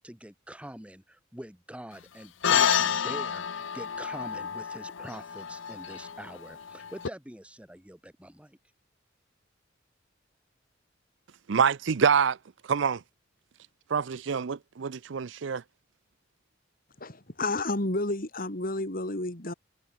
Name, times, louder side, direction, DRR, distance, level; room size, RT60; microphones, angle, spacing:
voice 1, 0.0-8.6, equal, 5° right, 3.4 m, -44 dB
sound 1, 2.4-7.1, left 8 dB, 75° left, 0.7 m, -29 dB
voice 2, 11.5-12.4 12.7-13.0 13.9-15.6, right 6 dB, 65° right, 0.5 m, -26 dB
voice 3, 17.0-19.5, left 2 dB, 45° left, 3.0 m, -31 dB
head